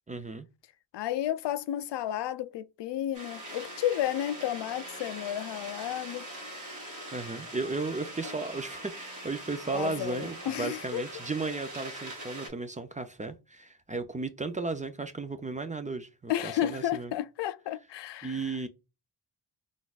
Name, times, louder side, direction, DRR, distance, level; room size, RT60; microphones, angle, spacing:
voice 1, 0.1-0.5 7.1-17.1 18.2-18.7, right 3 dB, 20° right, 0.4 m, -35 dB
voice 2, 0.9-6.3 9.7-11.0 16.3-18.5, left 12 dB, 75° left, 0.5 m, -32 dB
sound 1, 3.1-12.5, right 1 dB, 45° right, 1.7 m, -42 dB
3.9 x 2.5 x 2.3 m
cardioid pair, 80°, 43 cm